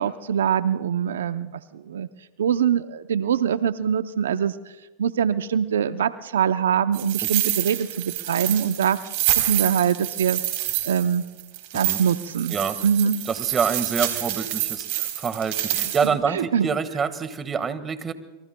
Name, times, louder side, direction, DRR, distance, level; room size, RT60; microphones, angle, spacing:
voice 1, 0.0-2.1 2.4-4.6 5.0-10.4 10.8-11.2 11.7-12.5 12.8-13.2 16.3-16.7, right 8 dB, 85° right, 12 dB, 0.6 m, -23 dB
sound 1, 6.9-16.1, right 14 dB, 60° right, 3.7 m, -27 dB
voice 2, 12.5-12.8 13.3-18.1, right 6 dB, 25° right, 12 dB, 1.6 m, -27 dB
28.0 x 22.5 x 2.2 m, 1.2 s
hypercardioid pair, 110°, 0 cm